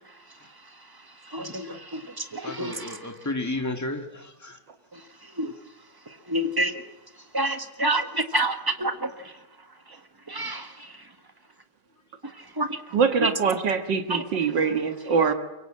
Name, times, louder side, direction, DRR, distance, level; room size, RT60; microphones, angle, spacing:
voice 1, 1.3-3.1 4.9-5.0 5.4-5.5 6.3-6.8 7.3-9.3 10.3-10.9 12.6-12.8 13.2-13.3 14.1-14.2, right 1 dB, 15° right, 7 dB, 1.0 m, -28 dB
voice 2, 2.4-4.6 7.5-7.6, left 2 dB, 10° left, 5 dB, 1.5 m, -33 dB
voice 3, 12.9-15.3, right 5 dB, 55° right, 7 dB, 2.1 m, -23 dB
23.5 x 23.0 x 7.6 m, 1.0 s
omnidirectional pair, 2.4 m